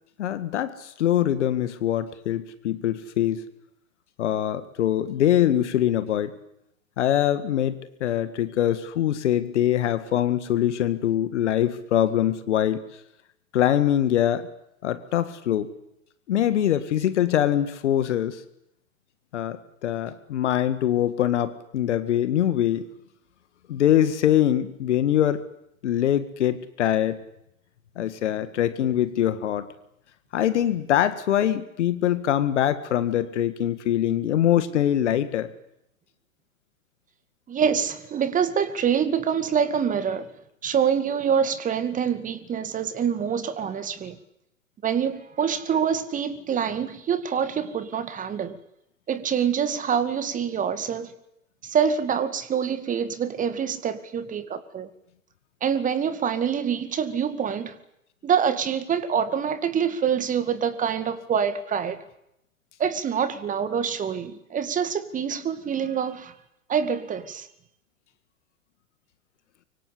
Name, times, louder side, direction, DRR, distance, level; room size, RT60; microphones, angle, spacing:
voice 1, 0.2-3.4 4.2-6.4 7.0-12.8 13.5-14.5 14.8-15.7 16.3-18.4 19.3-22.8 23.7-25.4 25.8-27.2 28.0-29.7 30.3-35.5, left 11 dB, 55° left, 2.0 m, -23 dB
voice 2, 37.5-40.3 40.6-44.2 44.8-48.6 49.1-51.1 51.6-54.9 55.6-57.8 58.2-62.0 62.8-66.3 66.7-67.5, right 7 dB, 20° right, 2.2 m, -25 dB
25.0 x 24.5 x 8.5 m
figure-of-eight pair, 100°, 42 cm